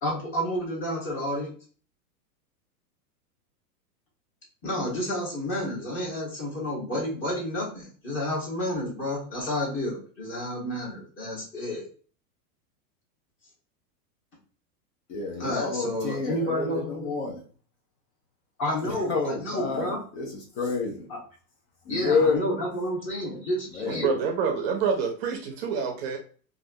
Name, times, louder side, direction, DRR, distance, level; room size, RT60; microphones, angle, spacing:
voice 1, 0.0-1.5 4.6-11.9 15.4-17.1 18.6-20.0 21.1-21.2 21.9-24.2, left 1 dB, 25° left, 1.4 m, -30 dB
voice 2, 15.1-17.4 18.8-21.1 21.8-22.4 23.7-24.0, left 4 dB, 45° left, 0.7 m, -29 dB
voice 3, 23.8-26.2, right 6 dB, 40° right, 0.5 m, -27 dB
3.2 x 2.5 x 2.6 m
supercardioid pair, 150°, 46 cm